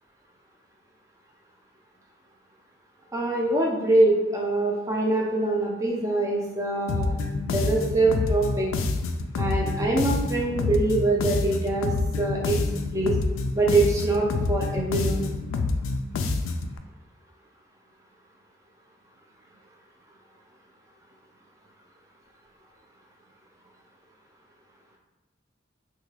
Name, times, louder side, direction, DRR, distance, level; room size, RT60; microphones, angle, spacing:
voice 1, 3.1-7.2 7.5-8.7 9.4-12.6 12.9-13.2 13.5-15.3, right 2 dB, 15° right, -1 dB, 0.4 m, -24 dB
sound 1, 6.9-16.7, left 3 dB, 80° left, 0.3 m, -27 dB
3.2 x 2.3 x 3.2 m, 1.1 s
head